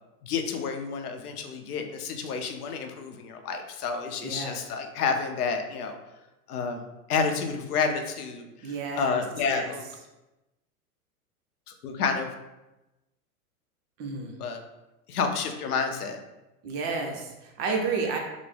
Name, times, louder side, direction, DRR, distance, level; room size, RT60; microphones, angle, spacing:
voice 1, 0.2-6.0 6.5-9.8 11.7-12.3 14.4-14.6 15.1-16.2, left 5 dB, 85° left, 5 dB, 0.6 m, -30 dB
voice 2, 4.2-4.6 8.6-9.2 9.5-9.7 14.0-14.4 16.6-18.2, right 4 dB, 35° right, 2 dB, 0.6 m, -31 dB
3.4 x 2.0 x 3.3 m, 1.0 s
hypercardioid pair, 120°, 44 cm